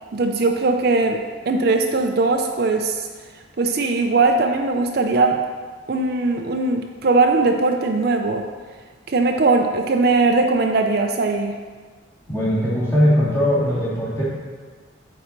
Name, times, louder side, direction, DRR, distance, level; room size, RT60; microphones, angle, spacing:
voice 1, 0.1-1.2 1.5-3.1 3.6-5.4 5.9-8.4 9.1-11.6, right 3 dB, 55° right, 4 dB, 0.5 m, -19 dB
voice 2, 12.3-14.2, equal, 15° left, -9 dB, 2.5 m, -19 dB
8.7 x 4.2 x 5.1 m, 1.5 s
head